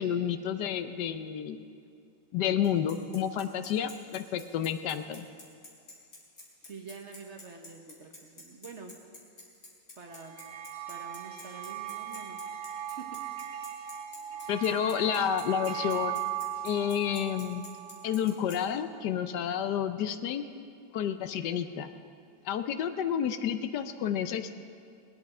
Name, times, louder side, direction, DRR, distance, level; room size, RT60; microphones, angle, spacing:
voice 1, 0.0-1.6 2.3-5.3 14.5-16.2 16.6-17.6 18.0-20.5 20.9-21.9 22.4-24.5, left 9 dB, 75° left, 10 dB, 1.3 m, -30 dB
Bicycle, 2.6-18.6, left 2 dB, 50° left, 3.8 m, -48 dB
voice 2, 6.6-8.9 10.0-10.4 10.9-12.4 12.9-13.2 16.5-16.7, right 4 dB, 45° right, 2 dB, 1.2 m, -47 dB
sound 1, 10.1-18.7, right 10 dB, 70° right, 2.0 m, -38 dB
22.0 x 10.5 x 4.3 m, 2.4 s
omnidirectional pair, 1.8 m